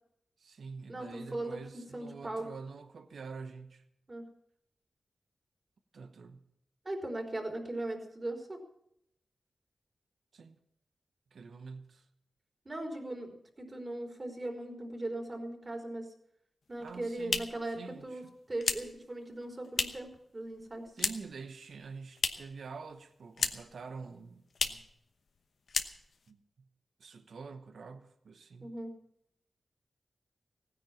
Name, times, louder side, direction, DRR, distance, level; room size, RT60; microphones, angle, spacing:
voice 1, 0.4-3.8 5.9-6.5 10.3-10.6 11.3-12.1 16.8-18.3 21.0-24.9 26.3-26.7 27.0-28.8, right 4 dB, 80° right, 1.0 m, -47 dB
voice 2, 0.9-2.5 4.1-4.3 6.8-8.6 12.7-16.1 16.7-17.8 18.0-18.2 18.5-20.9 28.6-28.9, right 1 dB, 35° right, 3.9 m, -39 dB
sound 1, 16.7-20.2 20.5-21.4 21.7-22.6 22.9-23.8 24.1-24.2 24.5-24.9 25.3-25.4 25.7-26.3, left 5 dB, 75° left, 1.0 m, -35 dB
16.0 x 9.9 x 7.3 m
cardioid pair, 60°, 0 cm